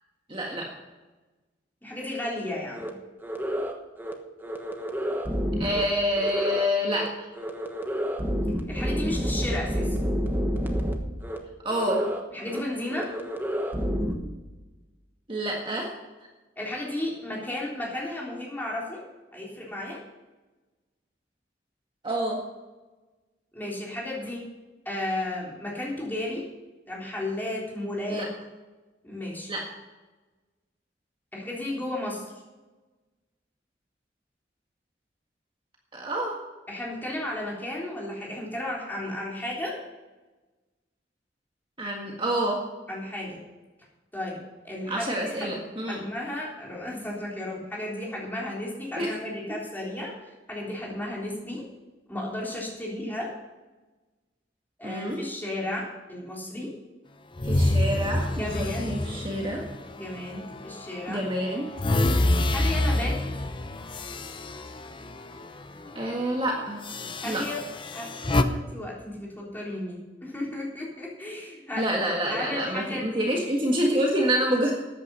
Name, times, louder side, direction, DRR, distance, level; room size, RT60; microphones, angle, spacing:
voice 1, 0.3-0.7 5.6-7.1 11.6-12.0 15.3-15.9 22.0-22.4 28.1-28.3 29.5-29.6 35.9-36.3 41.8-42.6 44.9-46.0 49.0-49.1 54.8-55.2 57.4-59.6 61.1-61.7 65.9-66.8 67.2-67.4 71.8-74.7, equal, 30° right, -1 dB, 1.7 m, -27 dB
voice 2, 1.8-2.9 8.7-10.0 12.3-13.1 16.6-19.0 19.3-20.0 23.5-24.4 24.9-26.5 26.9-28.3 29.0-29.5 31.3-32.2 36.7-39.8 42.9-43.4 44.1-44.4 44.6-45.6 45.9-50.1 50.5-51.6 52.1-53.3 54.8-56.7 58.4-59.0 59.9-61.2 62.5-63.1 67.2-67.6 67.9-68.1 68.3-71.9 72.3-73.3, left 1 dB, 10° left, -4 dB, 3.6 m, -33 dB
sound 1, 2.8-2.9 3.2-3.7 4.0-4.1 4.4-5.8 6.2-6.7 6.9-7.1 7.4-10.9 11.2-11.4 11.7-12.2 12.5-12.6 12.9-14.1, equal, 10° right, 1.2 m, -29 dB
sound 2, 57.4-60.7 61.2-65.5 65.8-66.0 66.8-68.4, left 1 dB, 25° left, 0.7 m, -27 dB
14.0 x 9.4 x 5.5 m, 1.2 s
head